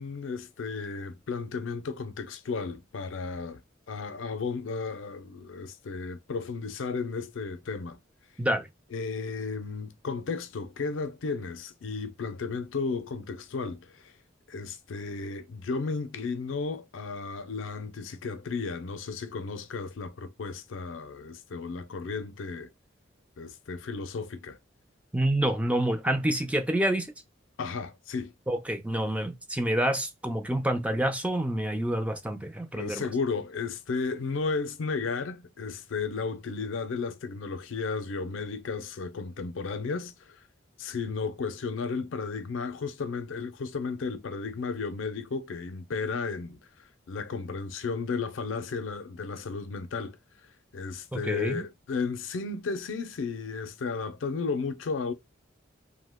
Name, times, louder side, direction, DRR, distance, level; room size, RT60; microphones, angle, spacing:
voice 1, 0.0-3.6 3.9-8.0 8.9-14.1 14.5-22.7 23.4-24.6 27.6-28.3 32.7-40.4 40.8-46.6 47.1-50.2 50.7-55.1, left 4 dB, 80° left, 0.5 m, -34 dB
voice 2, 25.1-27.1 28.5-33.1 51.1-51.6, right 1 dB, 5° right, 0.3 m, -28 dB
2.7 x 2.1 x 3.4 m
head